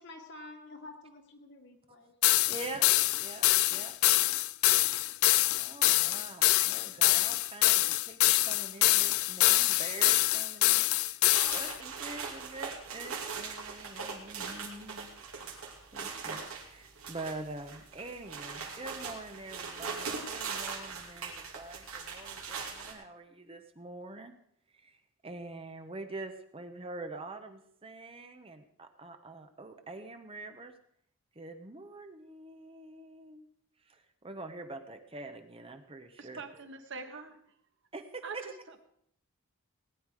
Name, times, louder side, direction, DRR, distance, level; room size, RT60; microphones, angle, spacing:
voice 1, 0.0-2.1 6.8-6.9, left 2 dB, 55° left, 3 dB, 2.0 m, -49 dB
sound 1, 2.2-11.7, left 17 dB, 85° left, 0.4 m, -25 dB
voice 2, 2.4-2.9 3.2-3.9 5.6-10.9 11.5-15.1 15.9-24.3 24.8-30.7 31.4-33.5 33.9-36.4 37.9-38.5, right 2 dB, 25° right, 7 dB, 0.9 m, -45 dB
sound 2, 11.3-22.9, right 5 dB, 85° right, 2.7 m, -40 dB
voice 3, 36.2-37.4 38.2-38.8, right 4 dB, 55° right, 6 dB, 1.5 m, -44 dB
18.5 x 10.0 x 4.8 m, 0.70 s
head